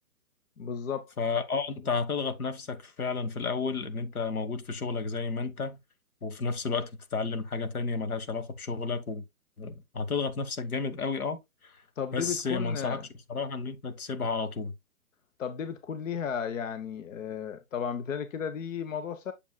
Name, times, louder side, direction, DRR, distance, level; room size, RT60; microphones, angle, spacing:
voice 1, 0.6-1.1 12.0-13.1 15.4-19.3, left 7 dB, 60° left, 0.9 m, -34 dB
voice 2, 1.2-5.8 6.2-9.2 9.6-11.8 12.1-13.0 13.3-14.7, left 4 dB, 80° left, 1.4 m, -32 dB
7.3 x 7.0 x 2.2 m
hypercardioid pair, 140°, 43 cm